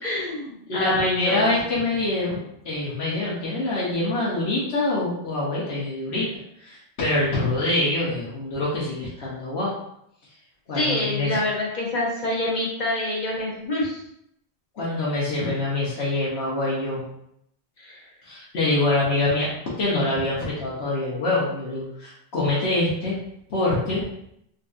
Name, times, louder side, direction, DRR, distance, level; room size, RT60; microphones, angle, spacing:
voice 1, 0.0-1.5 10.7-14.0 17.8-17.9, left 1 dB, 50° left, -4 dB, 1.0 m, -26 dB
voice 2, 0.7-6.3 6.6-9.7 10.7-11.4 14.7-17.0 18.2-19.5 19.8-23.2 23.5-24.0, left 2 dB, 85° left, -7 dB, 1.2 m, -25 dB
3.7 x 2.6 x 2.4 m, 0.74 s
omnidirectional pair, 1.1 m